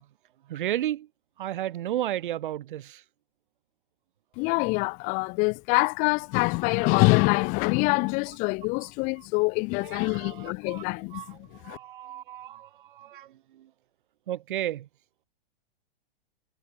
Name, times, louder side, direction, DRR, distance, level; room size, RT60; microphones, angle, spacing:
voice 1, 0.5-1.1 1.4-3.0 10.2-10.8 11.1-11.3 11.6-13.3 14.3-14.9, right 12 dB, 60° right, 2.1 m, -32 dB
voice 2, 4.4-11.8, left 29 dB, 25° left, 1.2 m, -25 dB
hypercardioid pair, 160°, 29 cm